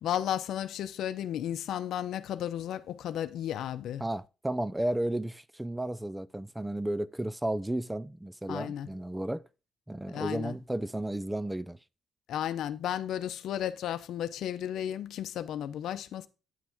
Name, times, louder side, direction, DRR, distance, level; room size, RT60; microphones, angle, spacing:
voice 1, 0.0-4.1 8.5-8.9 10.1-10.5 12.3-16.3, left 10 dB, 75° left, 0.7 m, -33 dB
voice 2, 4.0-9.4 9.9-11.8, right 1 dB, 10° right, 0.4 m, -33 dB
9.4 x 6.1 x 3.5 m
cardioid pair, 90°, 0 cm